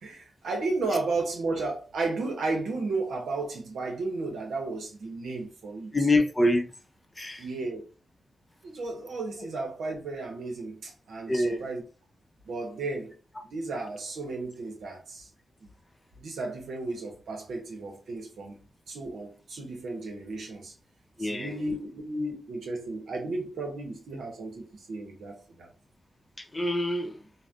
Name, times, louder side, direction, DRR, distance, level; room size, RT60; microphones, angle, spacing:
voice 1, 0.0-5.9 7.4-7.8 8.6-11.8 12.4-13.1 13.5-15.3 15.6-15.7 16.2-20.7 21.2-25.7, right 3 dB, 85° right, 0.8 m, -34 dB
voice 2, 5.9-6.7 7.2-7.4 11.3-11.7 21.2-21.6 26.4-27.2, left 1 dB, 25° left, 0.6 m, -26 dB
3.3 x 2.1 x 2.5 m
cardioid pair, 50°, 0 cm